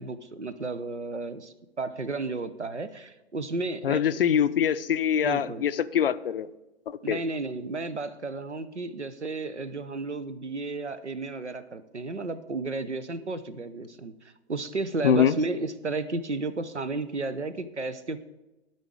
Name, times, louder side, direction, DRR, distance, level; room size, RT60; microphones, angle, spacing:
voice 1, 0.0-4.4 5.2-5.7 7.0-14.1 14.5-18.2, right 3 dB, 90° right, 13 dB, 0.7 m, -33 dB
voice 2, 3.8-6.5 6.9-7.2 15.0-15.4, left 9 dB, 55° left, 14 dB, 0.5 m, -24 dB
12.5 x 4.2 x 4.8 m, 1.0 s
figure-of-eight pair, 120°, 34 cm